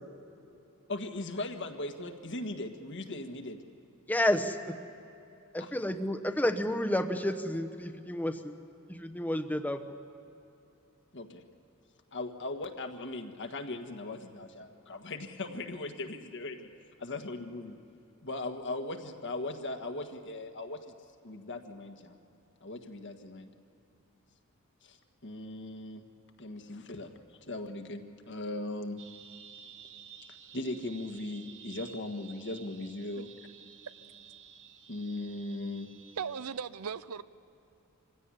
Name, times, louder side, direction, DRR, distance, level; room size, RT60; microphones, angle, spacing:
voice 1, 0.9-3.6 5.6-5.7 11.1-11.4 12.1-16.7 17.0-17.8 18.2-20.8 21.2-22.1 22.6-23.5 24.8-25.0 25.2-26.0 26.4-27.1 27.5-29.0 30.5-33.3 34.9-35.9, left 2 dB, 55° left, 1.6 m, -38 dB
voice 2, 4.1-4.8 5.5-8.5 8.9-10.0, left 1 dB, 10° left, 1.0 m, -30 dB
sound 1, 29.0-36.7, right 7 dB, 60° right, 1.3 m, -53 dB
voice 3, 36.2-37.2, right 6 dB, 80° right, 0.6 m, -37 dB
25.0 x 16.5 x 9.9 m
head